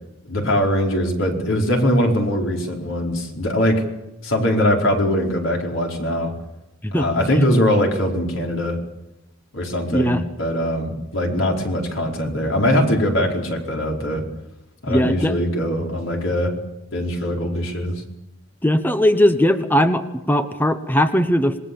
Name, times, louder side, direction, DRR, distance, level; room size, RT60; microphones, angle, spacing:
voice 1, 0.2-3.9 4.2-6.3 6.9-8.8 9.5-14.2 14.8-16.5 16.9-18.0, equal, 85° left, 1 dB, 4.9 m, -21 dB
voice 2, 9.9-10.2 14.9-15.3 18.6-21.6, equal, 10° left, 9 dB, 1.0 m, -19 dB
27.0 x 20.5 x 7.1 m, 0.91 s
head